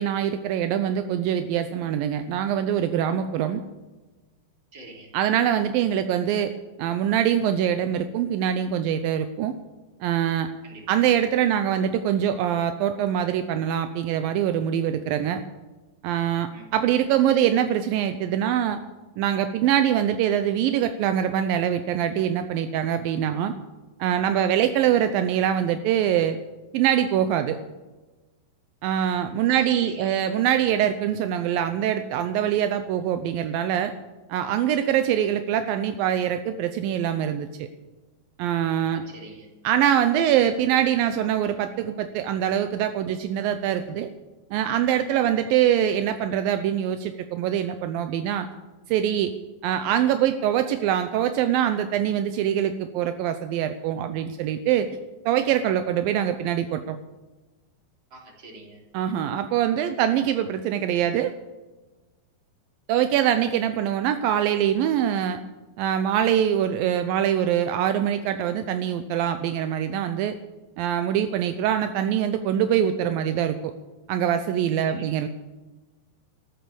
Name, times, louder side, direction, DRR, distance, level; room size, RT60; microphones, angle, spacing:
voice 1, 0.0-3.6 5.1-6.5 6.8-9.5 10.0-10.5 10.9-15.4 16.0-18.8 19.2-23.5 24.0-26.4 26.7-27.6 28.8-33.9 34.3-37.7 38.4-39.0 39.6-44.1 44.5-48.5 48.9-49.3 49.6-54.9 55.3-57.0 58.9-61.3 62.9-65.4 65.8-70.4 70.8-73.7 74.1-75.3, right 10 dB, 80° right, 9 dB, 2.1 m, -24 dB
voice 2, 4.7-5.1 10.6-10.9 16.5-16.7 29.5-30.1 38.9-39.5 45.2-45.3 58.1-58.8 74.8-75.1, right 2 dB, 30° right, -1 dB, 3.7 m, -45 dB
14.0 x 12.0 x 6.9 m, 1.2 s
omnidirectional pair, 4.9 m